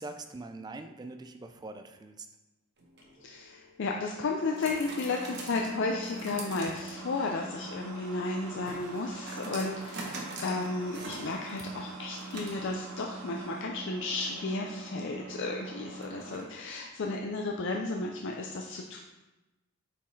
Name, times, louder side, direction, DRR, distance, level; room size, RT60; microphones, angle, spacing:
voice 1, 0.0-2.3, right 2 dB, 20° right, 7 dB, 0.3 m, -43 dB
sound 1, 2.8-16.8, right 3 dB, 50° right, 1.0 m, -43 dB
voice 2, 3.2-19.0, left 3 dB, 55° left, 1 dB, 0.4 m, -33 dB
sound 2, 7.0-13.6, right 4 dB, 70° right, 0.7 m, -50 dB
7.1 x 4.6 x 3.2 m, 1.1 s
head